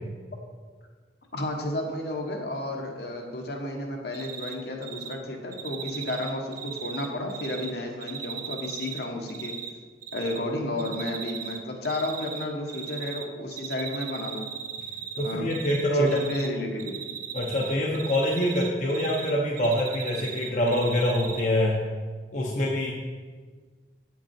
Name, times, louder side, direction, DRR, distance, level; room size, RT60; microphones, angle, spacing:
voice 1, 1.3-9.5 10.1-14.4 15.2-15.5 15.9-17.0, left 1 dB, 60° left, 1 dB, 1.2 m, -32 dB
Cricket, 4.1-4.5 4.8-5.1 5.5-7.7 8.0-9.7 10.0-10.4 10.8-11.6 11.8-13.2 13.5-15.8 16.1-16.5 16.8-19.3 19.6-21.4, right 8 dB, 50° right, 0.6 m, -37 dB
voice 2, 15.2-16.2 17.3-21.8 22.3-22.9, equal, 40° left, -3 dB, 0.8 m, -25 dB
9.0 x 6.0 x 4.4 m, 1.5 s
head